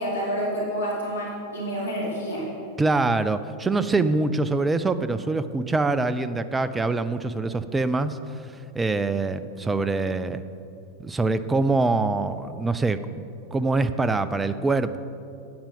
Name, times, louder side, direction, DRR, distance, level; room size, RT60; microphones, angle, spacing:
voice 1, 0.0-2.5, equal, 65° left, -4 dB, 2.4 m, -28 dB
voice 2, 2.8-10.4 11.0-15.0, right 3 dB, 10° right, 12 dB, 0.4 m, -24 dB
8.8 x 8.7 x 5.5 m, 2.6 s
figure-of-eight pair, 90°, 0 cm